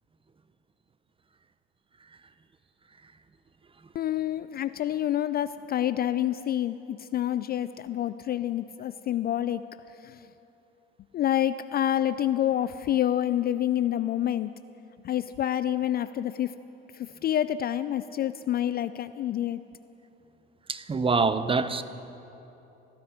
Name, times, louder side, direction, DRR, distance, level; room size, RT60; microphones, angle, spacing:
voice 1, 3.9-9.6 10.0-10.3 11.1-14.5 15.0-16.5 16.9-19.6, left 11 dB, 35° left, 14 dB, 0.4 m, -28 dB
voice 2, 20.7-21.8, right 4 dB, 20° right, 13 dB, 0.6 m, -25 dB
15.0 x 13.0 x 5.0 m, 3.0 s
hypercardioid pair, 65°, 29 cm